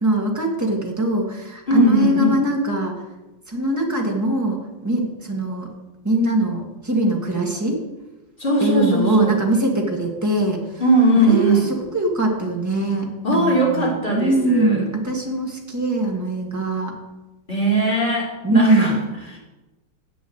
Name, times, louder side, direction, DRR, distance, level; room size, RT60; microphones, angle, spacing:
voice 1, 0.0-3.0 3.5-5.7 6.0-7.8 8.6-10.6 11.2-16.9 18.4-19.1, right 1 dB, 10° right, 0 dB, 1.5 m, -22 dB
voice 2, 1.7-2.3 8.4-9.4 10.8-11.7 13.2-14.8 17.5-18.9 19.3-19.4, right 2 dB, 25° left, -4 dB, 3.2 m, -19 dB
8.1 x 7.2 x 7.9 m, 1.1 s
omnidirectional pair, 2.3 m